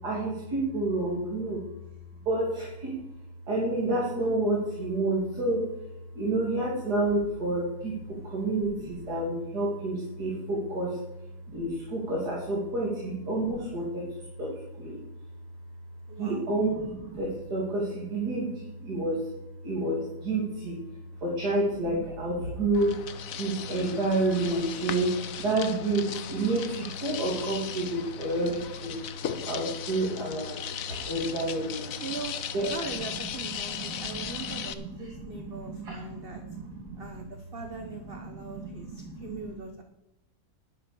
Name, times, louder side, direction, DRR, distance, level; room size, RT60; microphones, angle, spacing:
voice 1, 0.0-1.7 2.1-3.0 3.5-15.3 16.1-19.3 19.6-32.0 32.5-37.2 37.7-39.5, right 2 dB, 90° right, -4 dB, 3.3 m, -30 dB
voice 2, 16.1-16.5 32.0-32.3 32.7-36.4 37.0-39.8, right 4 dB, 40° right, 5 dB, 1.2 m, -41 dB
sound 1, 22.7-34.7, left 9 dB, 65° left, 1.2 m, -37 dB
11.5 x 8.0 x 6.9 m, 0.89 s
omnidirectional pair, 1.7 m